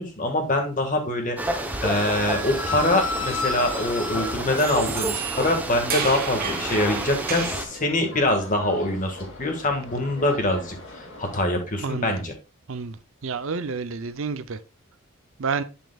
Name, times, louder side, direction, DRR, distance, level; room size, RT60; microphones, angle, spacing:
voice 1, 0.0-1.5 1.8-12.3, left 1 dB, 35° left, 1.7 m, -24 dB
sound 1, 1.4-7.7, right 1 dB, 5° right, 0.8 m, -30 dB
sound 2, 1.8-11.4, left 3 dB, 55° left, 2.4 m, -36 dB
sound 3, 4.6-7.7, right 6 dB, 40° right, 1.3 m, -32 dB
voice 2, 11.8-12.1 12.7-13.0 13.2-14.6 15.4-15.6, right 5 dB, 60° right, 0.6 m, -29 dB
11.0 x 5.3 x 2.3 m
head